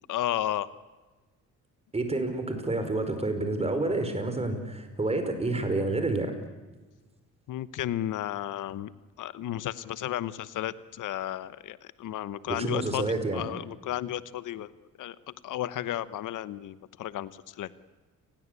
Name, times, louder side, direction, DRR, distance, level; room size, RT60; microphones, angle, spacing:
voice 1, 0.1-0.7 7.5-8.9 9.2-13.0 13.3-14.7 15.0-17.7, left 12 dB, 70° left, 15 dB, 1.1 m, -33 dB
voice 2, 1.9-6.3 12.5-13.4, right 2 dB, 20° right, 8 dB, 5.1 m, -29 dB
29.5 x 21.5 x 8.3 m, 1.3 s
cardioid pair, 125°, 32 cm